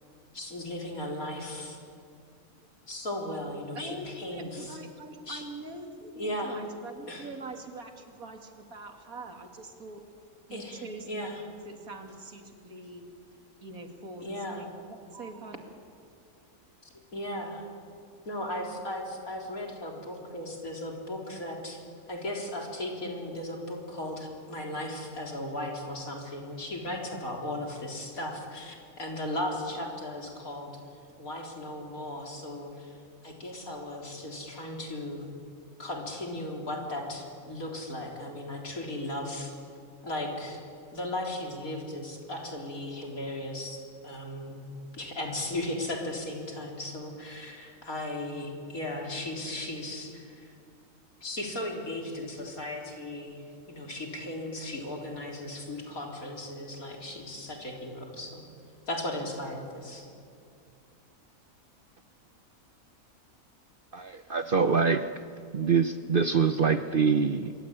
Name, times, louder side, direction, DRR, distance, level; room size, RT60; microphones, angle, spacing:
voice 1, 0.3-1.8 2.9-4.8 5.3-5.4 6.2-6.6 7.1-7.3 10.5-11.4 14.2-14.6 17.1-17.7 18.3-21.8 22.1-30.7 31.2-33.0 33.2-35.2 35.8-39.5 40.0-40.6 40.9-44.5 44.9-50.5 51.2-53.4 53.7-58.4 58.9-60.1, left 1 dB, 75° left, 0 dB, 4.4 m, -36 dB
voice 2, 3.7-10.0 10.5-13.1 13.6-15.7, right 2 dB, 80° right, 4 dB, 2.8 m, -43 dB
voice 3, 63.9-65.1 65.5-67.5, right 5 dB, 45° right, 9 dB, 0.8 m, -25 dB
26.0 x 23.5 x 8.9 m, 2.4 s
omnidirectional pair, 1.5 m